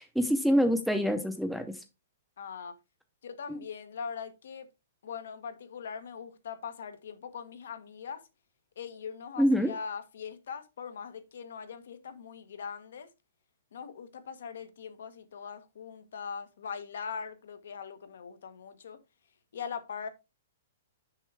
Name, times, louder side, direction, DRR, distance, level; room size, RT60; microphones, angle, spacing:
voice 1, 0.0-1.7 3.5-3.6 9.4-9.7, equal, ahead, 0.6 m, -26 dB
voice 2, 2.4-2.7 3.2-4.7 5.0-8.2 8.8-13.1 13.7-19.0 19.5-20.1, left 6 dB, 75° left, 1.2 m, -41 dB
6.3 x 5.6 x 3.3 m
hypercardioid pair, 170°, 0 cm